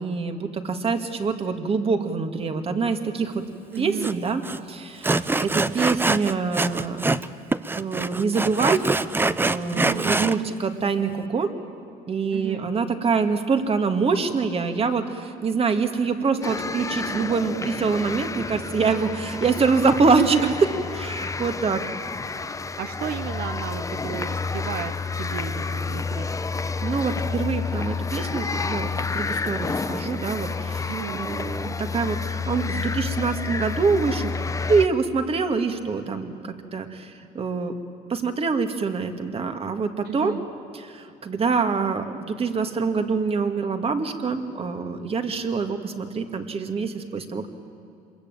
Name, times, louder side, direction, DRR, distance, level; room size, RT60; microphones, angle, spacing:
voice 1, 0.0-3.4 3.8-4.4 4.7-7.0 7.7-8.9 9.4-11.5 12.1-20.4 21.0-21.8 26.8-34.3 34.7-37.7 38.1-40.4 40.7-47.5, right 4 dB, 35° right, 7 dB, 2.1 m, -25 dB
voice 2, 3.7-4.1 9.7-10.1 12.3-12.6 20.1-20.5 22.8-26.3 30.9-31.5 40.0-40.5, right 11 dB, 70° right, 9 dB, 0.9 m, -32 dB
Sawing, 4.0-4.1 4.4-4.6 5.0-7.3 7.5-10.4, right 2 dB, 10° right, 0.7 m, -24 dB
sound 1, 16.4-34.9, left 4 dB, 20° left, 0.8 m, -30 dB
26.5 x 22.0 x 9.0 m, 2.5 s
cardioid pair, 110°, 17 cm